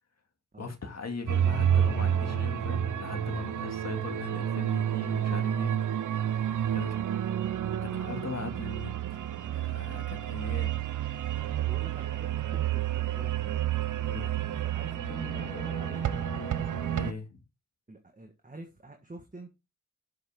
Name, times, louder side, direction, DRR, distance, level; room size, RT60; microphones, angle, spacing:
voice 1, 0.6-5.8 6.4-7.0 7.8-10.8 14.0-14.5 16.9-17.4, left 4 dB, 60° left, 2.1 m, -40 dB
sound 1, 1.3-17.1, right 10 dB, 80° right, 0.6 m, -30 dB
sound 2, 1.4-7.9 8.6-8.8 14.8-17.1, left 3 dB, 20° left, 0.5 m, -45 dB
voice 2, 6.4-7.5 11.6-13.6 14.5-16.1 17.9-19.5, right 2 dB, 25° right, 1.4 m, -47 dB
7.5 x 6.2 x 3.6 m
cardioid pair, 60°, 30 cm